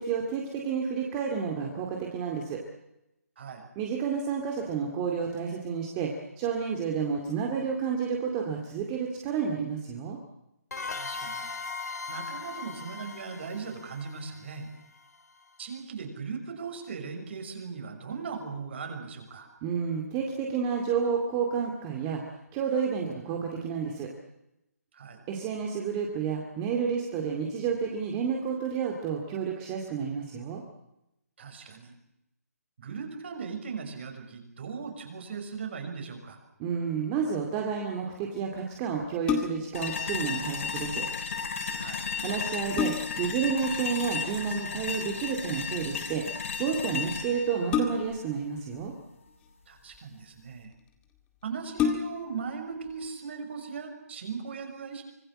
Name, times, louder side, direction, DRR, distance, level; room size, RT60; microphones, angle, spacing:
voice 1, 0.0-2.6 3.8-10.2 19.6-24.1 25.3-30.6 36.6-41.1 42.2-48.9, right 6 dB, 20° right, 1 dB, 2.3 m, -30 dB
voice 2, 3.4-3.7 10.9-11.5 12.1-14.7 15.6-19.5 24.9-25.2 31.4-31.9 32.8-36.4 41.8-42.1 49.7-50.7 51.4-55.0, right 5 dB, 45° right, 5 dB, 6.1 m, -38 dB
sound 1, 10.7-15.2, left 4 dB, 80° left, 3.4 m, -39 dB
sound 2, 39.0-39.8 41.8-41.9 42.4-43.3 44.9-45.2 47.7-48.3 49.3-50.0 50.7-50.8 51.1-51.2 51.7-52.4 52.9-53.0, left 7 dB, 10° left, 2.0 m, -30 dB
sound 3, 39.7-48.8, left 6 dB, 55° left, 5.2 m, -34 dB
25.0 x 20.0 x 7.6 m, 0.87 s
hypercardioid pair, 165°, 9 cm